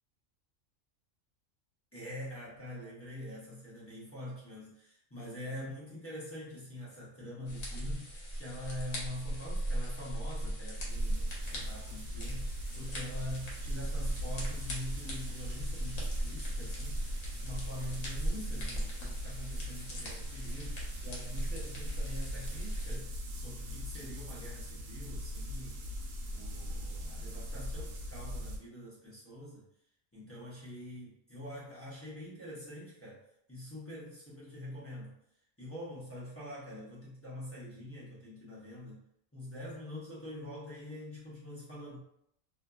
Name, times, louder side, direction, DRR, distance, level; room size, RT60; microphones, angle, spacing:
voice 1, 1.9-17.0 17.3-25.8 26.3-29.7 30.1-33.2 33.5-35.2 35.6-39.0 39.3-42.0, left 1 dB, 15° left, -9 dB, 0.5 m, -45 dB
sound 1, 7.5-23.0, right 1 dB, 90° left, 1.2 m, -38 dB
sound 2, 10.9-28.6, equal, 90° right, 1.0 m, -41 dB
2.7 x 2.4 x 2.2 m, 0.73 s
omnidirectional pair, 1.4 m